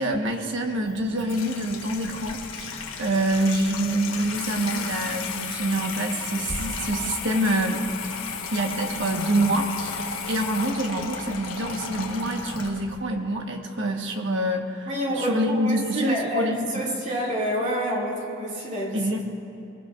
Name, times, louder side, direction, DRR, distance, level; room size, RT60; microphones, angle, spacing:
voice 1, 0.0-7.9 8.5-14.9 15.1-16.8 18.9-19.2, right 1 dB, 55° right, 3 dB, 1.4 m, -26 dB
Water tap faucet / Sink (filling or washing), 0.8-13.0, left 5 dB, 70° left, 1.3 m, -34 dB
voice 2, 14.9-19.1, equal, 35° right, -4 dB, 2.7 m, -28 dB
25.0 x 20.0 x 2.6 m, 2.8 s
head